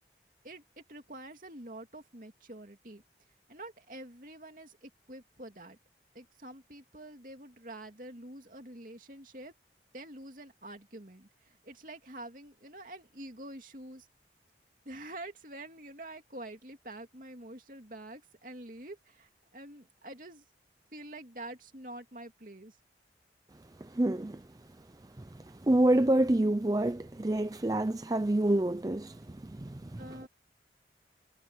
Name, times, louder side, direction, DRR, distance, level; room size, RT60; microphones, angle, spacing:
voice 1, 0.4-3.0 3.5-5.8 6.1-9.6 9.9-14.1 14.8-20.4 20.9-22.8 30.0-30.3, right 1 dB, 50° right, 2.8 m, -47 dB
voice 2, 23.8-24.5 25.2-30.2, right 1 dB, 20° right, 0.5 m, -28 dB
head